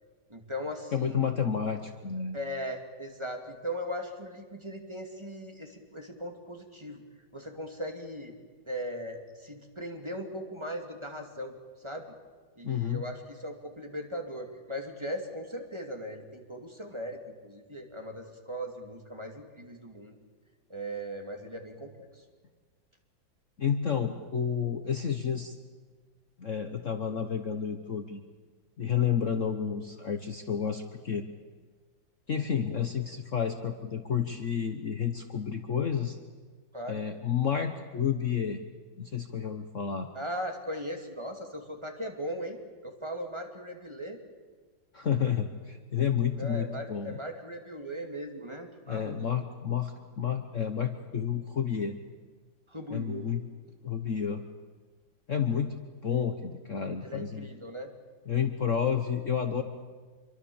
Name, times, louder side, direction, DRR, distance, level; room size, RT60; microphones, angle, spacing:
voice 1, 0.3-1.3 2.3-7.0 7.3-8.3 8.7-11.6 11.8-12.0 12.6-20.1 20.7-22.2 36.7-37.0 40.1-44.2 46.4-49.2 52.7-53.3 57.0-57.9, equal, 15° right, 3 dB, 2.5 m, -38 dB
voice 2, 0.9-2.4 12.6-13.0 23.6-25.5 26.4-28.2 28.8-31.3 32.3-36.2 36.9-38.6 39.0-40.1 44.9-47.1 48.9-52.0 52.9-53.4 53.8-54.4 55.3-55.7 56.0-57.5 58.3-59.6, left 8 dB, 45° left, 7 dB, 1.3 m, -30 dB
26.5 x 23.5 x 7.1 m, 1.5 s
omnidirectional pair, 2.0 m